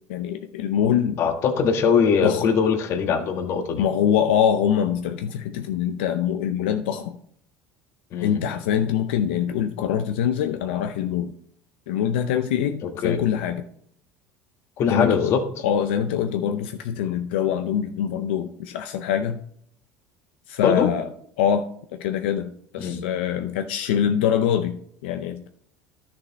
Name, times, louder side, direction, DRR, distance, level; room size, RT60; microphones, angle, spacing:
voice 1, 0.1-1.2 2.2-2.4 3.8-7.2 8.2-11.3 11.9-13.6 14.9-15.4 15.6-19.4 20.5-21.1 21.4-25.5, left 9 dB, 90° left, 8 dB, 0.5 m, -24 dB
voice 2, 1.2-3.8 8.1-8.4 12.8-13.2 14.8-15.4 20.6-20.9 22.8-23.0, left 6 dB, 50° left, 6 dB, 1.5 m, -22 dB
11.0 x 6.6 x 4.1 m, 0.67 s
supercardioid pair, 110°, 6 cm